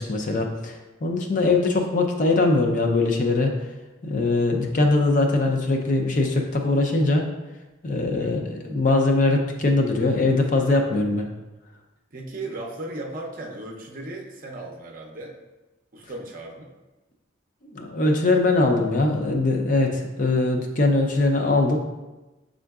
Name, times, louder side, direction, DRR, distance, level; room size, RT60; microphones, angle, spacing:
voice 1, 0.0-3.5 4.0-7.3 7.8-11.3 17.7-21.8, left 2 dB, 40° left, 2 dB, 0.5 m, -21 dB
voice 2, 12.1-15.4 15.9-16.7, right 2 dB, 45° right, 0 dB, 0.6 m, -36 dB
6.1 x 3.7 x 2.3 m, 1.1 s
head